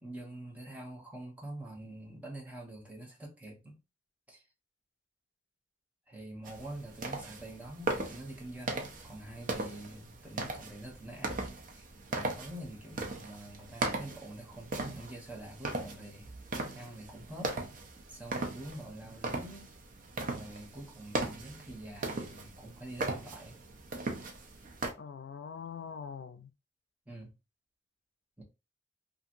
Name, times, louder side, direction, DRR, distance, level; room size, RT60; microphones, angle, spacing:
voice 1, 0.0-3.8 4.3-4.4 6.1-16.3 16.7-17.6 18.1-19.7 20.2-23.6 27.1-27.3 28.4-28.5, right 1 dB, 10° right, 0.8 m, -46 dB
sound 1, 6.4-24.9, right 2 dB, 45° right, 0.5 m, -39 dB
voice 2, 25.0-26.5, left 6 dB, 70° left, 0.4 m, -43 dB
2.8 x 2.5 x 2.5 m
head